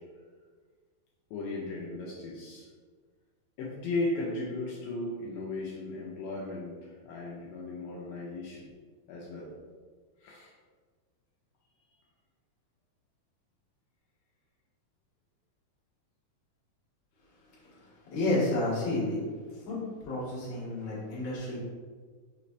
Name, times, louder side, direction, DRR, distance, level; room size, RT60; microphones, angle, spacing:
voice 1, 1.3-2.7 3.6-8.7 9.1-9.5 10.2-10.5, left 2 dB, 80° left, -4 dB, 2.3 m, -36 dB
voice 2, 18.1-19.2 19.6-21.6, left 2 dB, 55° left, -8 dB, 1.8 m, -30 dB
5.9 x 3.1 x 2.6 m, 1.5 s
omnidirectional pair, 4.4 m